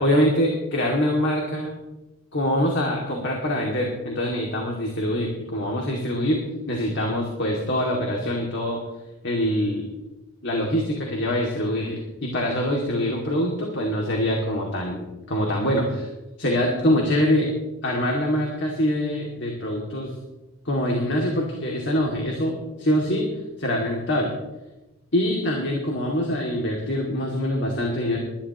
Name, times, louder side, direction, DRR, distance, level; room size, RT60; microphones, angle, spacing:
voice 1, 0.0-1.8 2.3-6.4 6.7-8.8 9.2-9.9 10.4-16.1 16.4-17.5 17.8-20.1 20.6-23.2 23.6-24.3 25.1-28.2, equal, 55° left, -1 dB, 2.5 m, -24 dB
21.5 x 11.5 x 3.1 m, 1.0 s
head